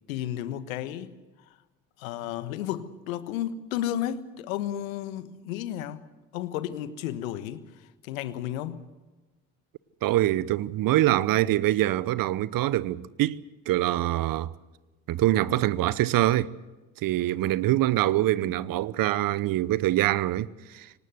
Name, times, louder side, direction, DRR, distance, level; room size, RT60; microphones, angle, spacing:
voice 1, 0.1-1.1 2.0-6.0 6.3-8.8, left 11 dB, 80° left, 1.4 m, -33 dB
voice 2, 10.0-13.4 13.7-14.5 15.1-16.5 17.0-20.9, right 14 dB, 55° right, 1.0 m, -24 dB
24.5 x 19.0 x 7.9 m
hypercardioid pair, 60°, 40 cm